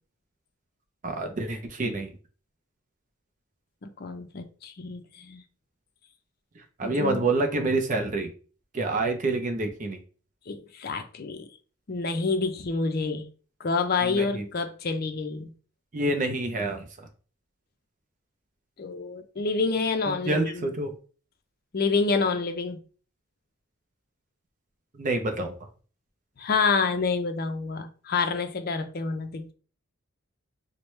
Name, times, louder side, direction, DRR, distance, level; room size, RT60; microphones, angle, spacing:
voice 1, 1.0-2.1 6.8-8.3 8.7-10.0 14.1-14.4 15.9-16.8 20.3-20.9 25.0-25.5, right 2 dB, 35° right, 0.5 m, -27 dB
voice 2, 3.8-5.4 6.8-7.2 10.5-11.5 11.9-13.3 13.6-15.5 18.8-20.7 21.7-22.8 26.4-29.5, left 4 dB, 45° left, 0.5 m, -28 dB
4.6 x 2.1 x 3.1 m
head